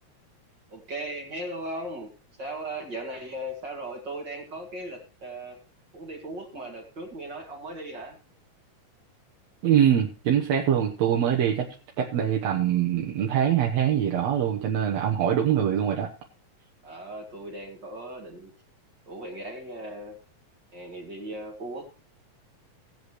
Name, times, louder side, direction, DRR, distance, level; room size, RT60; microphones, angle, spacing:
voice 1, 0.7-2.1 2.4-5.6 5.9-8.2 16.8-18.5 19.1-20.2 20.7-22.0, right 1 dB, 40° right, 0 dB, 2.5 m, -37 dB
voice 2, 9.6-11.7 12.0-16.1, right 9 dB, 70° right, -1 dB, 2.2 m, -23 dB
18.5 x 8.0 x 3.2 m, 0.35 s
omnidirectional pair, 3.3 m